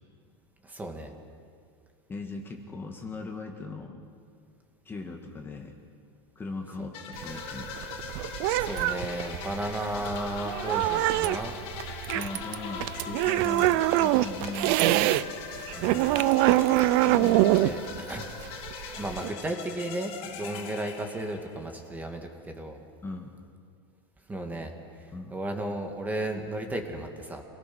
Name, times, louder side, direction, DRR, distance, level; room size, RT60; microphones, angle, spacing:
voice 1, 0.6-1.1 6.8-6.9 8.6-11.6 15.7-16.2 17.5-18.2 19.0-22.8 24.3-24.7 25.3-27.4, right 1 dB, 10° right, 3 dB, 2.2 m, -34 dB
voice 2, 2.1-4.0 4.9-5.8 6.4-7.7 12.1-15.3 17.0-18.3 20.5-20.7 23.0-23.3 25.1-25.3, left 3 dB, 15° left, 2 dB, 1.9 m, -39 dB
sound 1, 6.9-21.7, left 6 dB, 45° left, 3.1 m, -41 dB
sound 2, 7.1-15.2 15.6-19.3, right 16 dB, 55° right, 0.7 m, -25 dB
28.0 x 18.5 x 6.2 m, 2.2 s
supercardioid pair, 135°, 14 cm